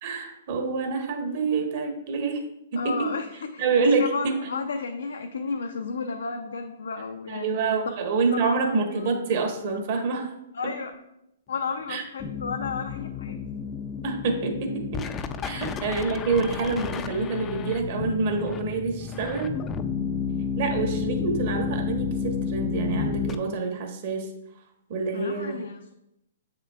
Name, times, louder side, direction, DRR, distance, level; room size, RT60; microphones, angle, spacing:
voice 1, 0.0-2.4 2.7-3.1 3.6-4.4 7.3-10.3 10.6-10.7 11.9-12.0 14.0-15.0 15.4-19.5 20.6-24.3 24.9-25.6, right 4 dB, 50° right, 4 dB, 1.2 m, -27 dB
voice 2, 2.8-3.7 4.0-7.7 8.3-9.1 10.5-10.9 11.5-13.4 15.5-15.7 25.1-25.9, left 4 dB, 80° left, 5 dB, 0.5 m, -33 dB
sound 1, 12.2-23.3, left 6 dB, 20° left, 0.3 m, -31 dB
7.1 x 5.8 x 2.3 m, 0.84 s
hypercardioid pair, 135°, 0 cm